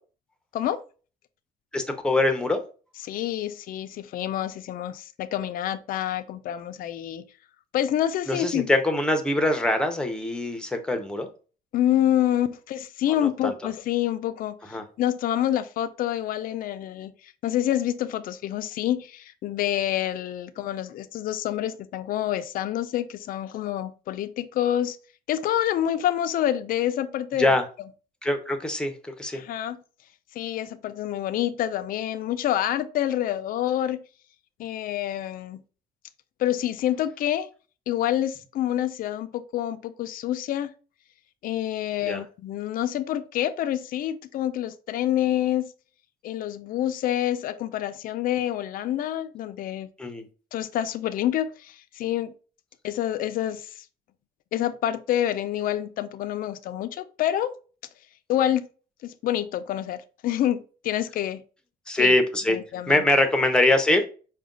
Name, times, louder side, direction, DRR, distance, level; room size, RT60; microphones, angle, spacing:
voice 1, 1.7-2.6 8.3-11.3 13.4-13.5 14.7-14.8 27.4-27.6 28.2-29.4 42.0-42.2 50.0-50.2 61.9-62.6 62.9-64.1, left 1 dB, 5° left, 0.7 m, -23 dB
voice 2, 3.0-7.2 7.7-8.7 11.7-25.0 25.3-27.5 29.3-29.8 30.4-34.0 34.6-35.6 36.4-37.5 37.9-40.7 41.4-45.7 46.2-49.9 50.5-52.3 52.8-53.8 54.5-57.5 58.3-58.7 59.0-61.4 62.0-62.1 62.5-63.0, left 11 dB, 55° left, 0.4 m, -27 dB
4.9 x 2.2 x 3.7 m
cardioid pair, 120°, 17 cm